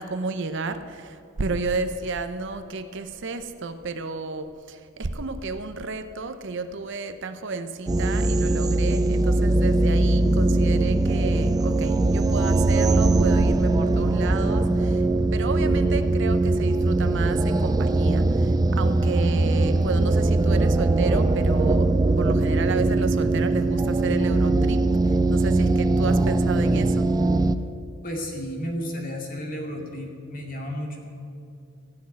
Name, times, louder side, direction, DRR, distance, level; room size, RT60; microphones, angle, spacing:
voice 1, 0.0-27.1, right 3 dB, 60° right, 10 dB, 0.7 m, -32 dB
sound 1, 7.9-27.5, right 2 dB, 20° right, 0.3 m, -21 dB
voice 2, 28.0-31.0, equal, 45° left, 1 dB, 2.2 m, -32 dB
15.5 x 6.3 x 9.5 m, 2.4 s
head